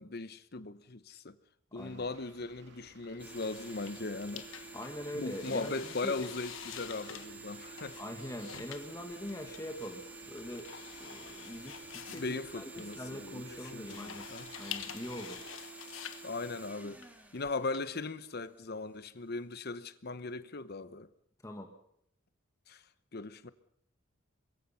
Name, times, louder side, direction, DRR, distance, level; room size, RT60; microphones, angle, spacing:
voice 1, 0.0-1.3 1.7-4.4 5.1-8.0 12.1-14.5 16.2-17.1 17.3-21.1 22.7-22.8 23.1-23.5, left 3 dB, 50° left, 1.0 m, -39 dB
voice 2, 1.7-2.0 4.7-6.3 7.9-10.7 11.0-14.3 14.6-15.4 21.4-21.7, equal, 15° left, 1.7 m, -43 dB
sound 1, 1.8-15.6, right 2 dB, 60° right, 2.7 m, -59 dB
sound 2, 3.2-18.4, right 3 dB, 10° right, 2.1 m, -49 dB
sound 3, 3.3-17.8, left 9 dB, 75° left, 1.3 m, -48 dB
24.5 x 22.0 x 5.7 m
head